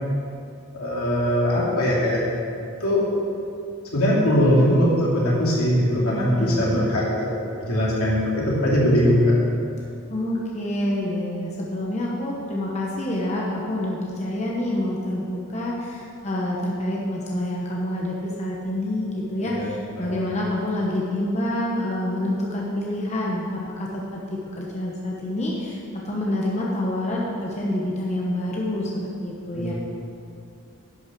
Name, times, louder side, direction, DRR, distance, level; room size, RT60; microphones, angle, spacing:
voice 1, 0.7-2.2 2.8-3.0 3.9-7.1 7.6-9.4 19.4-19.7 20.0-20.2 29.5-29.7, equal, 85° left, -5 dB, 2.9 m, -20 dB
voice 2, 6.1-6.7 10.1-29.7, left 1 dB, 30° left, -4 dB, 1.1 m, -27 dB
11.0 x 6.1 x 6.2 m, 2.5 s
head